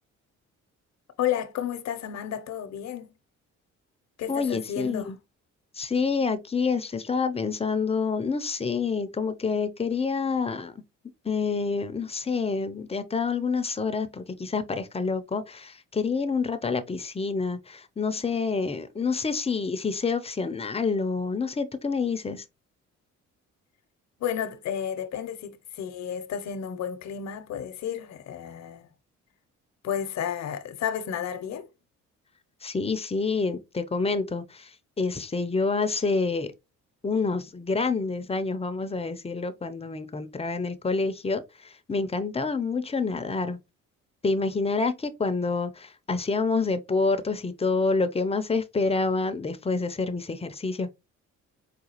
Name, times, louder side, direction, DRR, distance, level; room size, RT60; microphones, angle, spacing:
voice 1, 1.2-3.1 4.2-5.1 24.2-28.9 29.8-31.7, left 9 dB, 65° left, 0.7 m, -32 dB
voice 2, 4.3-5.2 5.8-10.7 11.2-22.4 32.6-34.7 35.0-36.5 37.0-43.6 44.2-50.9, left 4 dB, 20° left, 0.5 m, -27 dB
4.8 x 2.3 x 2.9 m
cardioid pair, 90°, 30 cm